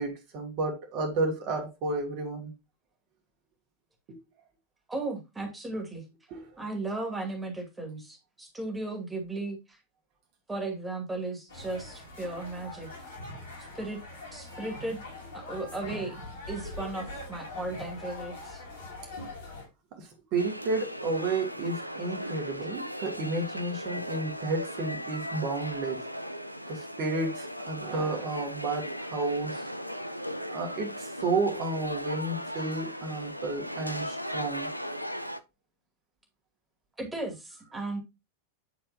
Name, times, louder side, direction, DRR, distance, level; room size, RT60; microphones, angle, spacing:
voice 1, 0.0-2.5 4.1-4.2 6.3-6.4 19.9-26.1 26.7-29.7 30.5-34.7, right 3 dB, 40° right, 2.3 m, -32 dB
voice 2, 4.9-6.0 6.6-9.8 10.5-12.9 13.7-14.0 14.3-15.0 15.3-16.2 16.5-18.6 37.0-38.0, right 2 dB, 10° right, 2.5 m, -35 dB
sound 1, 11.5-19.7, left 2 dB, 70° left, 3.8 m, -42 dB
sound 2, 20.4-35.4, equal, 90° right, 0.5 m, -37 dB
10.0 x 4.4 x 2.7 m
figure-of-eight pair, 90°, 0 cm